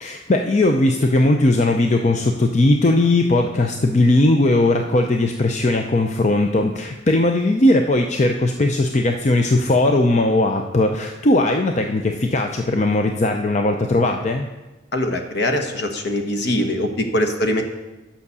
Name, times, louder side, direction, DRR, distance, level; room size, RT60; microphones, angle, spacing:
voice 1, 0.0-14.5, left 2 dB, 35° left, 4 dB, 0.5 m, -18 dB
voice 2, 14.9-17.6, left 1 dB, 60° left, 5 dB, 1.1 m, -22 dB
9.6 x 5.8 x 6.8 m, 1.1 s
head